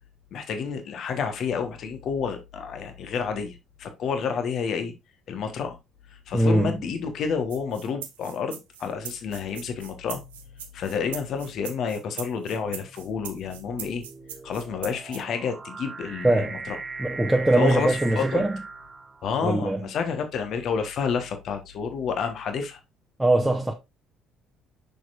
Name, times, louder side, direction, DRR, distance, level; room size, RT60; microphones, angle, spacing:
voice 1, 0.3-4.9 5.3-5.8 6.1-10.2 10.7-14.0 14.4-16.8 17.6-18.4 19.2-22.8, left 6 dB, 55° left, 1.2 m, -29 dB
voice 2, 6.3-6.8 16.2-16.6 17.0-18.6 19.4-19.8 23.2-23.7, right 1 dB, 10° right, 1.1 m, -22 dB
sound 1, 7.5-15.2, right 9 dB, 75° right, 0.8 m, -40 dB
sound 2, 10.2-10.6 11.4-19.7, right 4 dB, 30° right, 1.0 m, -40 dB
6.8 x 6.2 x 2.5 m
figure-of-eight pair, 50°, 0 cm